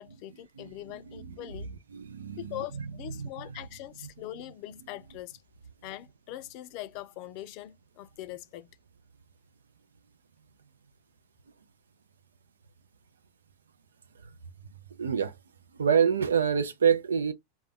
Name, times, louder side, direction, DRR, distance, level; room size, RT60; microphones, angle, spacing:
voice 1, 0.0-1.7 2.4-5.4 5.8-8.7, left 14 dB, 55° left, 0.4 m, -42 dB
voice 2, 1.1-1.5 1.9-2.8 3.2-3.6 15.0-15.4 15.8-17.3, right 7 dB, 90° right, 0.4 m, -27 dB
2.2 x 2.1 x 3.4 m
hypercardioid pair, 100°, 0 cm